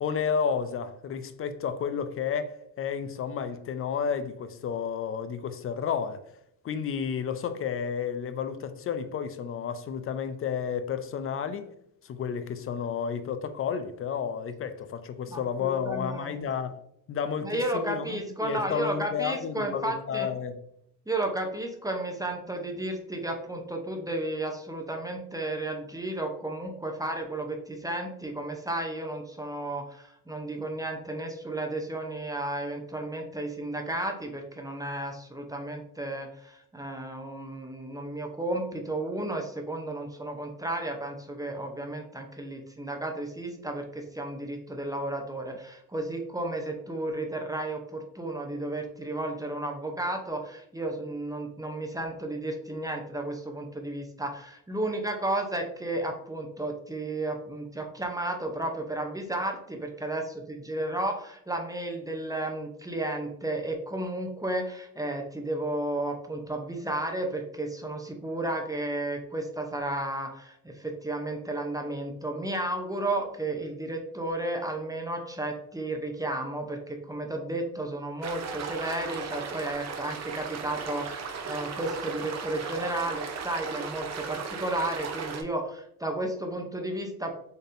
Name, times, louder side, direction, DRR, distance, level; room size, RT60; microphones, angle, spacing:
voice 1, 0.0-6.2 6.6-11.7 12.0-16.7 17.1-20.6, left 7 dB, 40° left, 0.5 m, -31 dB
voice 2, 15.3-16.4 17.4-20.3 21.1-87.3, right 1 dB, 10° right, 0.7 m, -33 dB
sound 1, 78.2-85.4, right 5 dB, 45° right, 0.7 m, -36 dB
4.3 x 3.3 x 2.6 m
cardioid pair, 90°, 36 cm